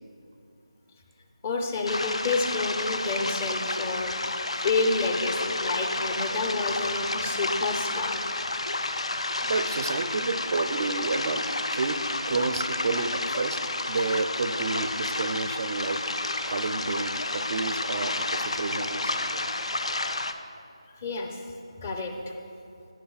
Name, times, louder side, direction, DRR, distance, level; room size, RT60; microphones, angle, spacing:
voice 1, 1.4-8.2 8.7-8.9 19.2-19.4 21.0-21.4 21.8-22.1, left 3 dB, 20° left, 4 dB, 0.7 m, -29 dB
sound 1, 1.9-20.3, left 2 dB, 75° left, 0.7 m, -30 dB
voice 2, 9.4-12.0 12.3-13.6 13.9-16.0 16.5-19.4, right 3 dB, 35° right, 8 dB, 0.5 m, -30 dB
18.0 x 10.5 x 2.4 m, 2.6 s
figure-of-eight pair, 165°, 3 cm